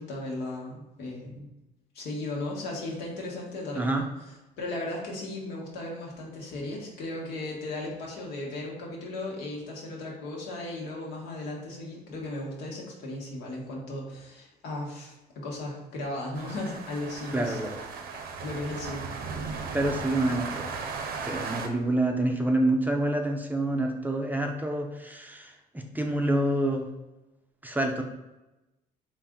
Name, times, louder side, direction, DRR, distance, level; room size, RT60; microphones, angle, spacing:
voice 1, 0.0-1.5 1.9-4.1 4.6-17.6 18.4-19.0, left 2 dB, 85° left, -2 dB, 1.2 m, -36 dB
sound 1, 16.3-21.7, right 5 dB, 65° right, 0.6 m, -36 dB
voice 2, 17.3-17.8 19.7-20.7 21.2-26.9 27.6-28.0, right 1 dB, 10° right, 3 dB, 0.4 m, -27 dB
4.1 x 2.5 x 3.7 m, 1.0 s
cardioid pair, 110°, 17 cm